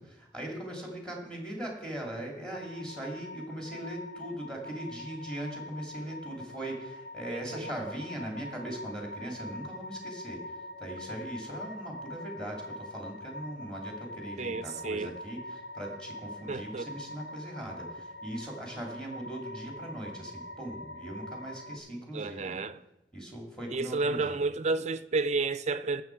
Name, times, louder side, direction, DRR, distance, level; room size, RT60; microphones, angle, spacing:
voice 1, 0.0-10.4 10.8-22.6 23.1-24.4, right 1 dB, 5° left, 2.5 m, -40 dB
sound 1, 2.5-21.8, left 1 dB, 75° left, 1.0 m, -44 dB
voice 2, 7.3-7.7 14.4-15.2 16.5-16.9 22.1-22.8 23.7-26.0, right 3 dB, 40° right, 0.5 m, -31 dB
17.5 x 6.9 x 4.6 m
head